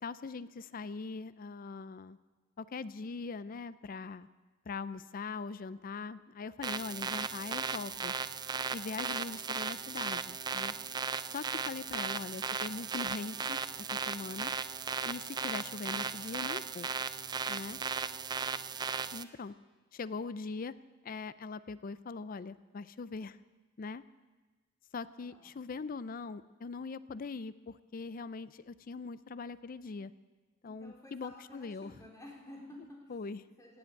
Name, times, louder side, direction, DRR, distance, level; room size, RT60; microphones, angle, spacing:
voice 1, 0.0-2.2 2.6-4.3 4.7-8.1 8.7-10.7 11.3-14.5 15.0-16.9 17.5-17.8 19.1-19.5 19.9-20.7 21.0-23.4 23.8-24.0 24.9-30.1 30.6-31.9 33.1-33.4, left 4 dB, 45° left, 16 dB, 0.4 m, -41 dB
sound 1, 6.6-19.2, right 5 dB, 20° right, 0.4 m, -36 dB
voice 2, 25.2-25.8 30.6-33.0 33.6-33.8, left 1 dB, 15° left, -2 dB, 3.8 m, -53 dB
17.5 x 7.9 x 8.5 m, 1.3 s
head